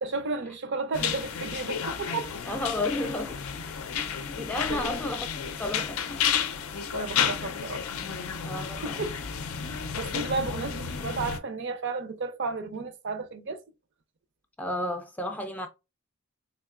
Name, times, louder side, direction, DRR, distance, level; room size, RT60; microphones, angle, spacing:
voice 1, 0.0-2.3 4.7-5.1 6.9-7.8 8.8-9.2 9.7-13.6, right 3 dB, 55° right, 0.5 m, -33 dB
sound 1, 0.9-11.4, left 7 dB, 80° left, 0.5 m, -32 dB
voice 2, 2.4-3.4 4.0-5.3 5.6-6.3 8.4-9.0 14.6-15.7, left 2 dB, 5° left, 0.3 m, -32 dB
3.5 x 3.2 x 2.4 m
head